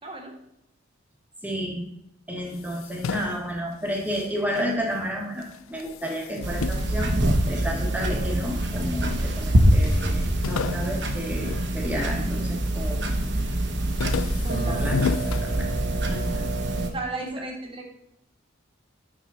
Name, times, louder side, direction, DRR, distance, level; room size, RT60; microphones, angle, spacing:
voice 1, 0.0-0.3 14.4-14.9 15.5-15.8 16.9-17.8, right 2 dB, 25° right, 1 dB, 1.5 m, -35 dB
voice 2, 1.4-1.8 2.3-7.1 7.5-13.2 14.6-15.7 16.1-16.5, equal, 10° right, 0 dB, 1.6 m, -31 dB
sound 1, 2.4-5.1 5.4-7.9 8.5-9.2 9.5-9.6 9.8-12.4 12.8-13.2 13.6-16.2, left 6 dB, 75° left, 0.4 m, -34 dB
sound 2, 6.4-16.9, right 1 dB, 55° right, 1.0 m, -25 dB
9.3 x 6.2 x 4.1 m, 0.82 s
head